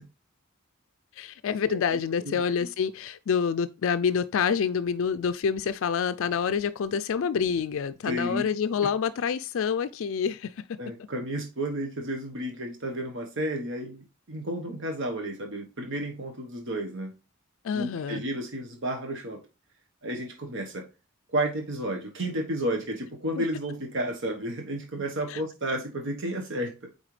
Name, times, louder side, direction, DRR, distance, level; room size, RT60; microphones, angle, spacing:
voice 1, 1.2-10.5 17.6-18.2 23.4-23.5 25.3-25.4, left 6 dB, 65° left, 0.4 m, -27 dB
voice 2, 8.1-8.5 10.8-17.1 17.7-19.4 20.0-20.9 21.3-26.9, right 1 dB, 60° right, 1.2 m, -32 dB
8.8 x 4.0 x 3.2 m
head